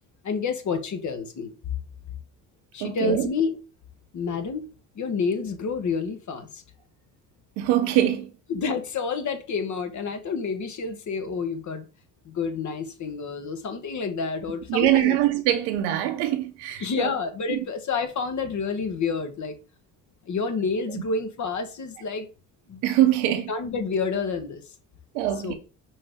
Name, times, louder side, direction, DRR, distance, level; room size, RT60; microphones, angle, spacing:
voice 1, 0.2-1.5 2.7-3.6 4.1-4.7 4.9-6.6 8.5-11.9 12.2-15.2 16.8-19.6 20.3-22.3 22.7-22.8 23.5-24.6 25.4-25.5, left 5 dB, 45° left, 1.0 m, -29 dB
voice 2, 2.8-3.3 7.6-8.3 14.7-17.1 17.5-17.7 22.8-23.5 25.1-25.5, right 12 dB, 90° right, 0.6 m, -23 dB
5.3 x 2.7 x 3.4 m
supercardioid pair, 70°, 39 cm